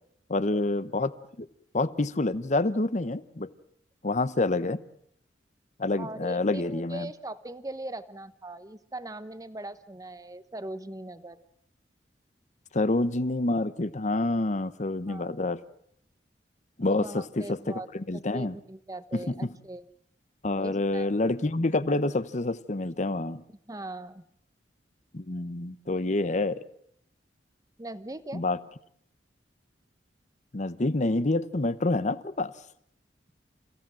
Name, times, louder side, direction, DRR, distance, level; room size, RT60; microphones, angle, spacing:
voice 1, 0.3-1.5 1.7-3.5 4.0-4.8 5.8-7.1 12.7-15.6 16.8-18.6 19.1-19.5 20.4-23.4 25.1-26.6 28.3-28.6 30.5-32.5, left 2 dB, 45° left, 0.9 m, -27 dB
voice 2, 6.0-11.4 15.1-15.4 16.9-17.9 18.1-19.9 20.6-21.1 23.7-24.2 27.8-28.4, right 2 dB, 20° right, 1.0 m, -40 dB
28.5 x 16.0 x 7.6 m
head